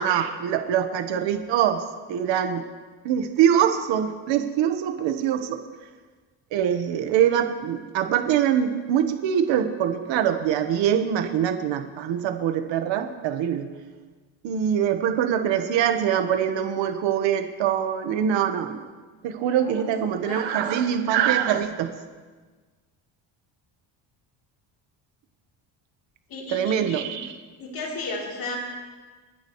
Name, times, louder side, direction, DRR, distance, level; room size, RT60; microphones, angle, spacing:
voice 1, 0.0-1.8 2.1-2.6 3.0-5.6 6.5-13.7 14.4-18.8 19.2-21.9 26.5-27.3, right 9 dB, 75° right, 7 dB, 1.3 m, -23 dB
voice 2, 19.3-19.9 20.2-21.1 26.3-27.0 27.6-28.6, left 2 dB, 50° left, -2 dB, 3.3 m, -35 dB
29.5 x 10.5 x 3.1 m, 1.4 s
cardioid pair, 160°, 45 cm